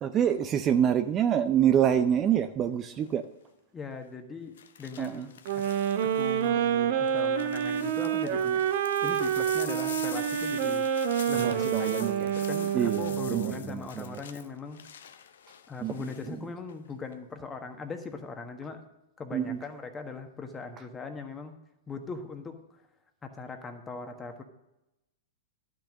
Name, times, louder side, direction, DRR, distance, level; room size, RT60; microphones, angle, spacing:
voice 1, 0.0-3.2 5.0-5.2 11.4-12.3 12.7-14.2 15.8-15.9 19.3-19.6, right 9 dB, 30° right, 0.5 m, -26 dB
sound 1, 2.9-3.2 4.6-6.5 7.0-16.3 16.7-17.1, left 8 dB, 70° left, 0.7 m, -45 dB
voice 2, 3.7-4.5 4.8-5.6 6.0-8.6 9.0-10.8 11.3-14.8 15.7-18.8 19.2-21.5 21.9-22.6 23.2-24.4, left 4 dB, 15° left, 1.4 m, -40 dB
sound 2, 5.5-13.7, right 9 dB, 55° right, 1.0 m, -28 dB
12.0 x 6.1 x 6.4 m
hypercardioid pair, 105°, 0 cm